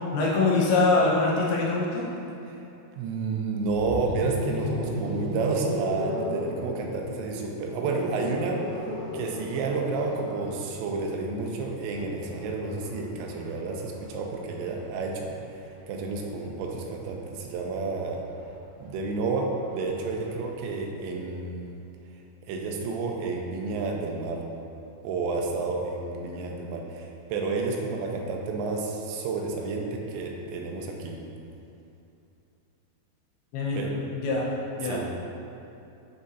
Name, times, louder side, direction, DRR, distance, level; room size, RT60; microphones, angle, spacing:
voice 1, 0.1-2.0 33.5-34.4 34.8-35.0, left 3 dB, 75° left, -5 dB, 2.4 m, -24 dB
voice 2, 3.0-8.6 9.1-15.2 15.6-18.2 18.8-21.8 22.5-24.4 25.0-31.2 33.7-33.9 34.8-35.1, right 3 dB, 85° right, 1 dB, 2.8 m, -30 dB
sound 1, 3.6-15.6 16.9-20.5, equal, 60° right, 2.1 m, -36 dB
9.8 x 3.9 x 2.6 m, 2.7 s
omnidirectional pair, 5.1 m